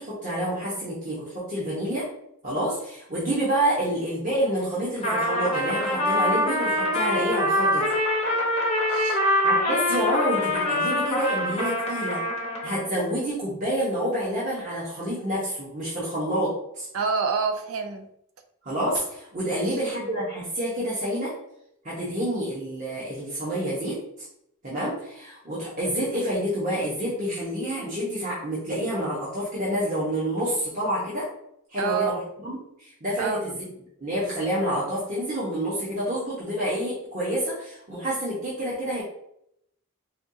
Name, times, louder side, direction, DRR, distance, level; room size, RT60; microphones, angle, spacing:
voice 1, 0.0-2.0 2.4-7.9 9.0-9.2 9.4-12.2 12.6-16.9 18.6-21.3 21.8-24.0 24.6-31.3 31.7-33.5 34.0-39.0, right 1 dB, 35° right, -8 dB, 0.9 m, -28 dB
Trumpet, 5.0-12.9, left 1 dB, 30° left, 0.7 m, -24 dB
voice 2, 8.9-9.2 16.9-18.1 19.4-19.8 31.8-32.2 33.2-33.4, right 5 dB, 80° right, 7 dB, 0.5 m, -27 dB
4.3 x 2.3 x 2.7 m, 0.75 s
head